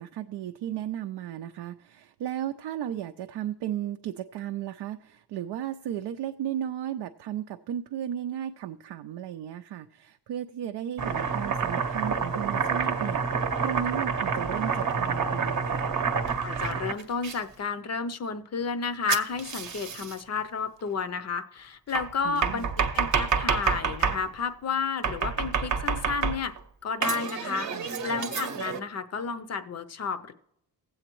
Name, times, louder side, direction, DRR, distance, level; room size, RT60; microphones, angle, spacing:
voice 1, 0.0-15.9 22.2-22.7 27.7-27.9, right 11 dB, 75° right, 6 dB, 0.5 m, -35 dB
Domestic sounds home sounds, 11.0-17.4 19.1-20.2 21.9-24.2 25.0-26.6 27.0-28.8, right 6 dB, 45° right, 0.8 m, -28 dB
voice 2, 16.4-26.5 26.8-30.3, left 5 dB, 40° left, 11 dB, 0.6 m, -32 dB
19.0 x 7.9 x 3.0 m, 0.77 s
cardioid pair, 125°, 41 cm